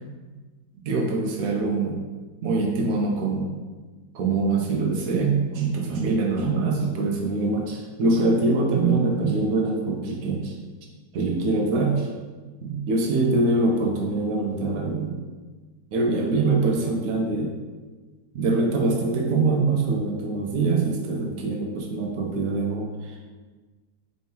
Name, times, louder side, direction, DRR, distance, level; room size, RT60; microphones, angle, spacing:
voice 1, 0.8-1.9 2.4-3.5 4.1-10.5 11.1-12.1 12.6-15.2 15.9-17.5 18.3-23.2, right 3 dB, 70° right, 0 dB, 0.9 m, -24 dB
4.3 x 3.3 x 2.8 m, 1.3 s
omnidirectional pair, 1.8 m